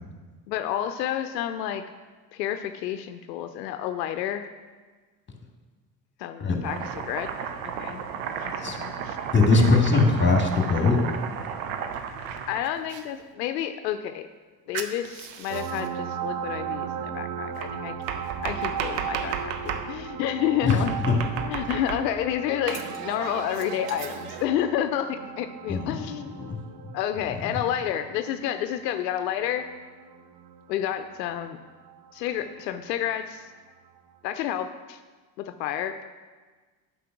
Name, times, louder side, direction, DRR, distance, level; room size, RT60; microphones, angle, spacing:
voice 1, 0.5-1.8 2.3-4.5 6.2-7.3 7.8-8.0 8.4-9.2 9.5-9.8 10.1-10.3 12.5-14.3 14.7-18.0 18.4-26.5 26.9-29.7 30.7-31.6 32.1-33.5 34.2-35.0 35.4-36.0, left 10 dB, 85° left, 9 dB, 0.6 m, -30 dB
Domestic sounds home sounds, 6.6-13.0 14.7-15.9 17.6-19.9 20.7-22.3 22.7-24.5, right 7 dB, 70° right, 0.9 m, -34 dB
voice 2, 9.3-11.0 20.6-20.9 25.7-26.0 26.4-26.6, left 3 dB, 20° left, 2 dB, 2.0 m, -20 dB
sound 1, 15.5-32.7 34.3-34.4, right 9 dB, 45° right, 0.8 m, -37 dB
8.3 x 5.4 x 5.9 m, 1.4 s
hypercardioid pair, 70°, 48 cm